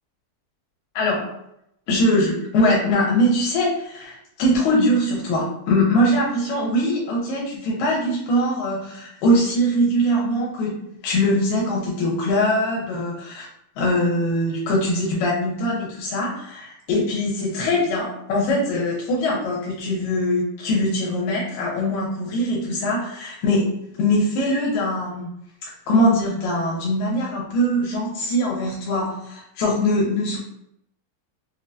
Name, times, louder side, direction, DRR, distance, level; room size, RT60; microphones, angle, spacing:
voice 1, 1.0-1.4 1.9-13.5 13.8-25.3 25.9-30.4, left 1 dB, 80° left, -4 dB, 2.7 m, -22 dB
6.1 x 2.1 x 2.6 m, 0.76 s
omnidirectional pair, 4.0 m